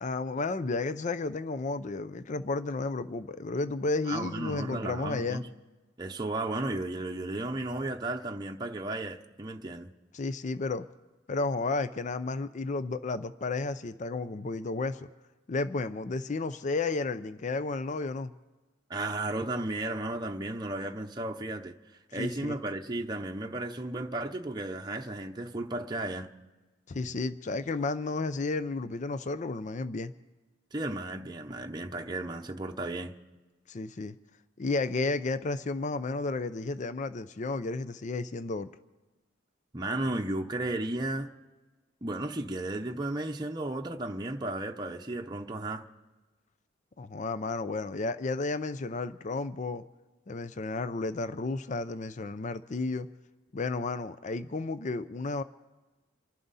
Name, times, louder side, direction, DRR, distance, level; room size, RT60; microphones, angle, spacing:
voice 1, 0.0-5.4 10.1-10.9 11.3-15.1 15.5-18.3 22.1-22.6 26.9-30.1 33.7-34.1 34.6-38.7 47.0-49.8 50.3-53.1 53.5-55.4, left 3 dB, 40° left, 0.5 m, -32 dB
voice 2, 4.1-5.5 6.0-9.9 18.9-21.7 22.1-26.3 30.7-33.2 39.7-41.3 42.0-45.8, right 2 dB, 20° right, 0.8 m, -34 dB
27.5 x 11.5 x 4.1 m
head